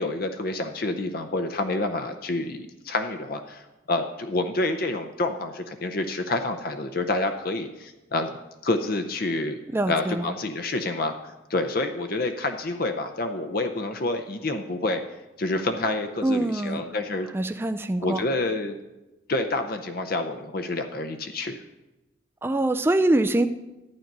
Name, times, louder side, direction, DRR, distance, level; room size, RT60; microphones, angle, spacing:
voice 1, 0.0-8.3 8.6-9.6 9.9-15.0 15.4-17.3 18.0-18.7 19.3-21.5, left 2 dB, 50° left, 6 dB, 0.6 m, -28 dB
voice 2, 9.7-10.3 16.2-16.9 17.3-18.2 22.4-23.5, right 1 dB, 10° right, 8 dB, 0.3 m, -24 dB
12.0 x 9.0 x 5.4 m, 1.0 s
head